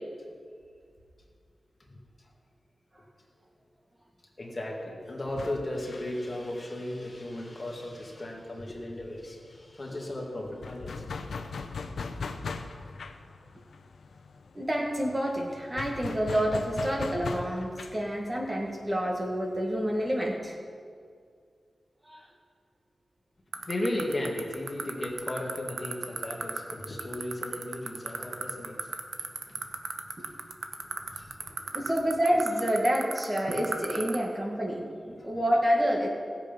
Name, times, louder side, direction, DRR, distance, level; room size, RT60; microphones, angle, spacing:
voice 1, 4.4-11.1 23.5-29.7 30.3-30.4 30.8-31.8, left 1 dB, 35° left, -1 dB, 1.9 m, -36 dB
sound 1, 5.3-8.7 8.9-9.1 9.3-20.3, left 4 dB, 85° left, 0.7 m, -40 dB
voice 2, 14.5-20.5 22.1-22.2 31.7-36.1, equal, 20° right, -1 dB, 1.7 m, -28 dB
sound 2, 23.5-34.2, right 5 dB, 85° right, 0.9 m, -32 dB
16.5 x 7.6 x 5.3 m, 2.1 s
wide cardioid pair, 105°, 0 cm